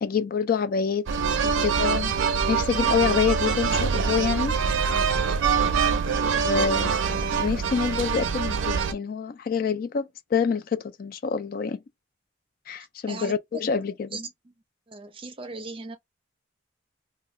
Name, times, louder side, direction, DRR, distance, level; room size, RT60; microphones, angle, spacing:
voice 1, 0.0-1.1 1.4-2.1 2.5-4.5 6.4-11.8 12.7-14.2, left 6 dB, 45° left, 0.3 m, -27 dB
sound 1, 1.1-8.9, right 6 dB, 75° right, 0.4 m, -24 dB
voice 2, 13.1-13.6 14.1-14.5 14.9-16.0, right 3 dB, 25° right, 0.6 m, -38 dB
2.7 x 2.3 x 3.1 m
head